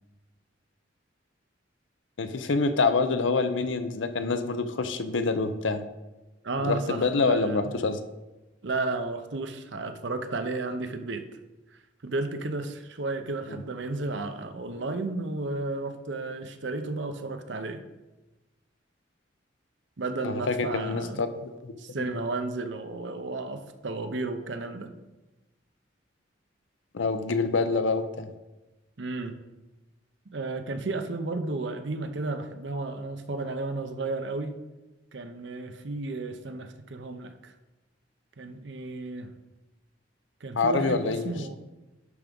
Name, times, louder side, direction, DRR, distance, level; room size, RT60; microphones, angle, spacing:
voice 1, 2.2-5.8 6.6-8.0 13.5-13.6 20.2-21.7 22.1-22.2 26.9-28.3 40.6-41.3, left 4 dB, 80° left, 10 dB, 0.7 m, -26 dB
voice 2, 6.4-7.7 8.6-11.2 12.0-17.8 20.0-21.2 21.8-24.9 29.0-29.4 30.3-34.6 35.1-37.5 38.4-39.3 40.4-41.6, right 3 dB, 65° right, 8 dB, 0.8 m, -33 dB
11.0 x 3.7 x 5.3 m, 1.1 s
head